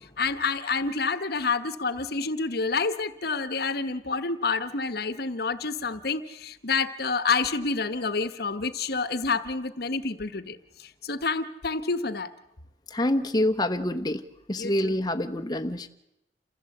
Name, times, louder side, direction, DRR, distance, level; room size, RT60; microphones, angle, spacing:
voice 1, 0.2-12.3 14.6-15.0, left 4 dB, 60° left, 12 dB, 1.2 m, -28 dB
voice 2, 12.9-14.2 14.5-15.9, left 1 dB, 25° left, 6 dB, 1.1 m, -26 dB
28.0 x 15.5 x 7.9 m, 0.86 s
head